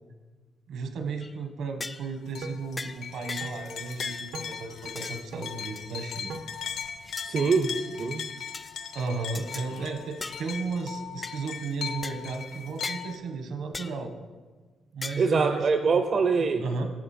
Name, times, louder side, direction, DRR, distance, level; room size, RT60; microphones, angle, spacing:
voice 1, 0.7-6.4 8.9-14.1 14.9-16.0 16.6-16.9, right 4 dB, 75° right, 6 dB, 1.1 m, -34 dB
sound 1, 1.2-1.4 1.8-2.1 2.8-3.0 3.3-3.6 4.0-4.3 5.0-5.2 5.8-6.2 6.8-7.3 7.8-8.1 8.5-8.8 9.3-9.7 10.2-10.5 11.2-11.4 12.0-12.2 12.8-13.1 13.7-14.0 15.0-15.3, left 3 dB, 20° left, 0.3 m, -38 dB
sound 2, 2.3-13.2, left 7 dB, 80° left, 0.8 m, -38 dB
sound 3, 2.4-2.6 3.4-3.5 4.3-4.5 5.3-5.5 6.3-6.5, right 4 dB, 90° right, 0.7 m, -39 dB
voice 2, 7.2-8.2 15.2-16.6, right 4 dB, 40° right, 7 dB, 0.4 m, -24 dB
11.0 x 7.0 x 4.3 m, 1.4 s
cardioid pair, 140°, 0 cm